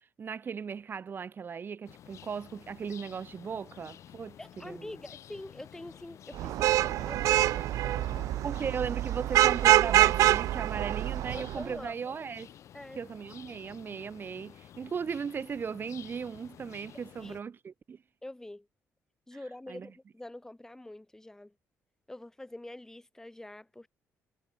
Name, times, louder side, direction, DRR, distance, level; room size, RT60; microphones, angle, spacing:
voice 1, 0.0-4.4 4.6-4.9 8.4-12.5 13.0-18.0 19.3-19.4 19.7-19.9, right 6 dB, 40° right, 2.8 m, -37 dB
sound 1, 1.8-17.4, left 10 dB, 65° left, 4.4 m, -52 dB
voice 2, 4.4-8.2 11.3-12.2 12.7-13.0 17.2-17.4 18.2-18.7 19.3-21.5 22.1-23.9, left 1 dB, 10° left, 6.7 m, -45 dB
Vehicle horn car horn honking / Traffic noise roadway noise, 6.4-11.7, right 14 dB, 80° right, 0.6 m, -25 dB
cardioid pair, 115°, 5 cm